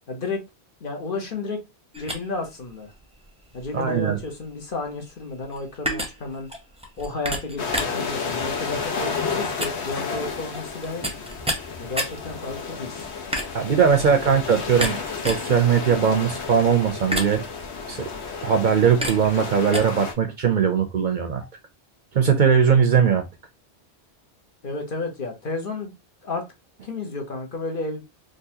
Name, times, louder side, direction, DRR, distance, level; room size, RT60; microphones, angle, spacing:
voice 1, 0.1-0.4 0.8-1.6 2.0-2.9 3.5-6.5 7.0-11.0 11.8-13.1 13.9-14.3 24.6-25.9 26.2-26.4 26.8-28.0, left 3 dB, 55° left, 1.1 m, -32 dB
sound 1, 1.9-19.8, equal, 5° right, 0.6 m, -33 dB
voice 2, 3.7-4.2 13.5-15.0 15.2-17.4 17.9-18.0 18.4-21.5 22.1-23.2, right 7 dB, 55° right, 0.6 m, -20 dB
sound 2, 7.6-20.1, left 5 dB, 85° left, 1.1 m, -32 dB
3.8 x 2.5 x 2.7 m
omnidirectional pair, 1.1 m